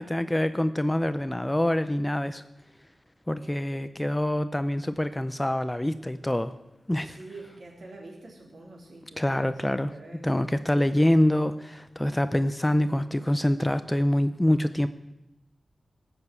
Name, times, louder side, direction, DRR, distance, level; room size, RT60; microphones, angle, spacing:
voice 1, 0.0-2.4 3.3-6.5 6.9-7.2 9.2-9.9 10.2-14.9, left 1 dB, 10° left, 11 dB, 0.5 m, -25 dB
voice 2, 7.0-10.3, right 2 dB, 55° right, -1 dB, 3.8 m, -46 dB
18.5 x 6.9 x 8.2 m, 0.93 s
wide cardioid pair, 140°, 0 cm